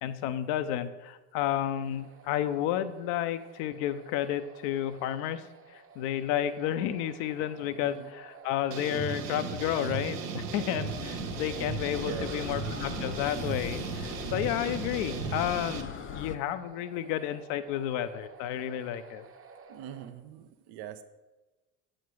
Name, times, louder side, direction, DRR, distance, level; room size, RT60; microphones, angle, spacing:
voice 1, 0.0-5.4 5.7-19.2, left 11 dB, 60° left, 12 dB, 0.7 m, -31 dB
sound 1, 1.6-20.1, right 5 dB, 30° right, 1.0 m, -52 dB
sound 2, 8.7-15.8, right 5 dB, 85° right, 0.9 m, -36 dB
sound 3, 10.8-16.4, left 9 dB, 30° left, 0.6 m, -41 dB
voice 2, 12.0-12.5 15.0-15.4 19.7-21.0, right 10 dB, 60° right, 9 dB, 0.7 m, -42 dB
8.3 x 6.5 x 4.6 m, 1.1 s
hypercardioid pair, 65°, 45 cm